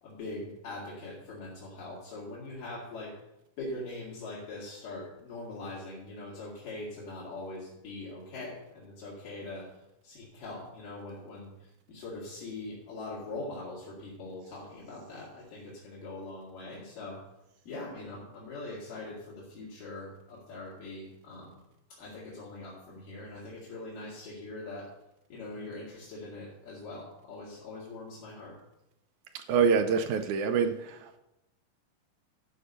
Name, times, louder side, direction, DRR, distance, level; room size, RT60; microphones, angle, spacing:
voice 1, 0.0-3.2 3.6-9.7 10.0-17.2 17.7-21.5 21.9-24.9 25.3-28.6, left 2 dB, 75° left, -6 dB, 3.8 m, -42 dB
voice 2, 29.3-31.2, right 6 dB, 80° right, 8 dB, 2.0 m, -26 dB
13.0 x 5.6 x 6.6 m, 0.89 s
omnidirectional pair, 3.8 m